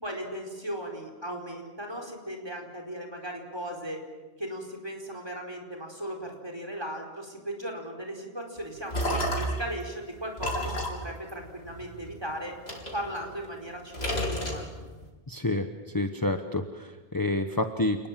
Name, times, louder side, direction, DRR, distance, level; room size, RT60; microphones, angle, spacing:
voice 1, 0.0-4.0 4.4-12.5 12.9-14.6, right 1 dB, 25° right, 2 dB, 4.7 m, -37 dB
sound 1, 8.6-9.7 10.4-12.1 12.7-13.6 13.9-15.1, equal, 80° left, 4.3 m, -31 dB
voice 2, 15.3-18.1, left 2 dB, 20° left, 6 dB, 1.1 m, -29 dB
28.5 x 20.0 x 7.6 m, 1.2 s
omnidirectional pair, 1.1 m